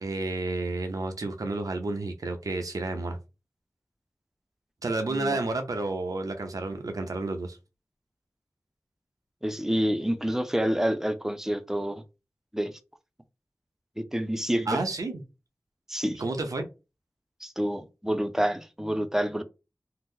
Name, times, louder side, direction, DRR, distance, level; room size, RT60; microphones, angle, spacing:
voice 1, 0.0-3.2 4.8-7.6 14.7-15.2 16.2-16.7, right 2 dB, 90° right, 0.6 m, -30 dB
voice 2, 5.1-5.4 9.4-12.0 12.5-12.7 14.0-14.8 15.9-16.2 17.4-19.4, equal, 5° right, 0.5 m, -28 dB
2.8 x 2.0 x 3.6 m
wide cardioid pair, 55°, 6 cm